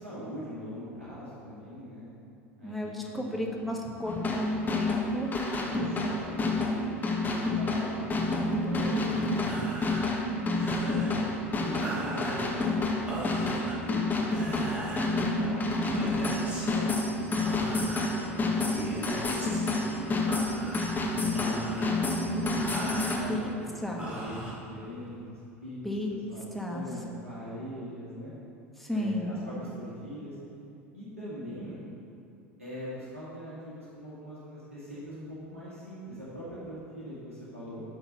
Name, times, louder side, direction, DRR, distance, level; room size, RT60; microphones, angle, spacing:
voice 1, 0.0-2.0 2.6-3.6 5.6-9.6 10.5-11.2 11.5-20.4 21.0-23.4 23.7-25.2 25.6-25.8 26.1-28.3 28.9-30.4 30.9-31.8 32.6-37.8, equal, 90° right, -10 dB, 2.2 m, -41 dB
voice 2, 2.6-5.8 10.1-10.9 23.3-23.5 23.8-24.0 25.8-26.1 26.5-26.9 28.8-29.4, left 1 dB, ahead, -1 dB, 1.5 m, -34 dB
Taiko drums, 4.1-23.2, left 2 dB, 25° left, 1.4 m, -29 dB
sound 1, 9.3-25.2, right 1 dB, 20° right, 2.3 m, -40 dB
12.5 x 4.5 x 5.4 m, 2.6 s
figure-of-eight pair, 75°, 7 cm